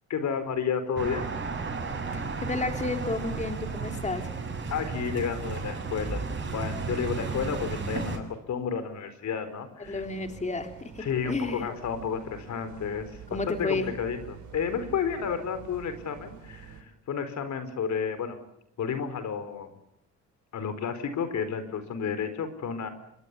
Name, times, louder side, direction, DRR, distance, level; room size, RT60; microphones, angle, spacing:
voice 1, 0.1-1.3 4.7-6.2 6.5-10.0 11.0-18.4 18.8-19.7 20.5-22.9, left 6 dB, 65° left, 11 dB, 4.3 m, -31 dB
sound 1, 1.0-8.2, right 4 dB, 40° right, 7.6 m, -33 dB
voice 2, 2.1-4.3 9.9-11.7 13.3-13.9, left 3 dB, 25° left, 5 dB, 3.6 m, -32 dB
sound 2, 9.8-16.8, right 8 dB, 70° right, 4.8 m, -47 dB
26.5 x 22.0 x 8.3 m, 0.79 s
cardioid pair, 90°, 30 cm